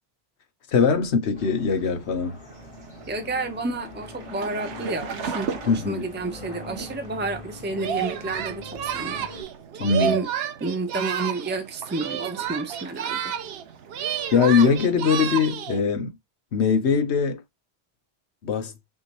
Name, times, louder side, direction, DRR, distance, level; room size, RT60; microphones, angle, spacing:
voice 1, 0.7-2.4 5.7-6.1 9.8-10.2 14.3-16.1 16.5-17.4 18.4-18.7, left 6 dB, 70° left, 1.1 m, -21 dB
sound 1, 1.3-9.4, left 2 dB, 50° left, 2.6 m, -42 dB
sound 2, 2.5-15.0, right 6 dB, 90° right, 1.0 m, -40 dB
voice 2, 3.1-9.3 10.0-10.3 10.6-13.2, right 3 dB, 15° right, 0.3 m, -30 dB
Singing, 7.8-11.6 11.9-13.6 13.9-15.8, right 9 dB, 65° right, 0.8 m, -30 dB
6.1 x 2.7 x 3.0 m
omnidirectional pair, 1.2 m